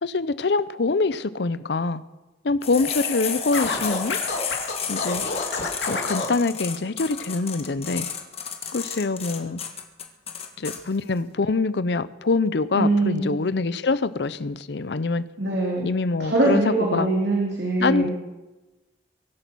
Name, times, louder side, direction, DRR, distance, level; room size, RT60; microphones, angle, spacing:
voice 1, 0.0-2.0 2.4-4.2 4.9-5.2 5.9-8.1 8.7-9.6 10.6-15.2 15.8-17.1 17.8-18.1, left 3 dB, 70° left, 16 dB, 0.6 m, -24 dB
sound 1, 2.6-10.8, left 7 dB, 35° left, 1.5 m, -31 dB
Scratching (performance technique), 3.5-6.3, left 3 dB, 85° left, 2.5 m, -28 dB
voice 2, 12.7-13.3 15.4-15.9 16.2-18.1, right 2 dB, 75° right, -3 dB, 3.0 m, -22 dB
23.0 x 8.3 x 6.2 m, 1.1 s
head